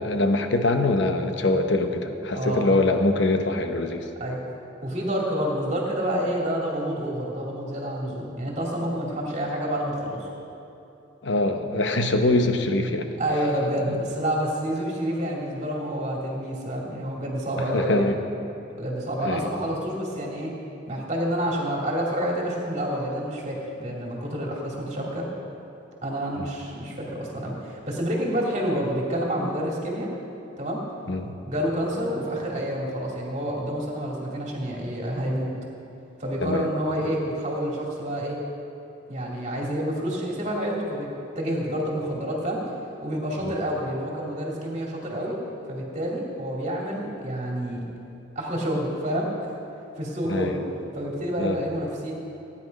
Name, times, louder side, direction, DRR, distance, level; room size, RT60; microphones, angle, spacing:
voice 1, 0.0-4.1 11.2-13.1 13.9-14.0 17.6-18.2 19.2-19.5 26.4-26.5 31.1-31.4 36.4-36.7 43.4-43.6 50.3-50.6 51.4-51.6, left 2 dB, 70° left, 6 dB, 1.0 m, -24 dB
voice 2, 2.3-2.8 4.2-4.5 4.8-10.3 13.2-18.1 18.7-20.6 20.9-25.3 26.0-30.1 30.6-30.8 31.5-35.5 36.2-38.4 39.1-41.1 41.4-42.7 43.0-45.4 45.7-47.8 48.4-49.5 50.0-50.6 50.9-52.1, equal, 35° right, -2 dB, 2.3 m, -28 dB
16.0 x 9.9 x 5.2 m, 2.9 s
head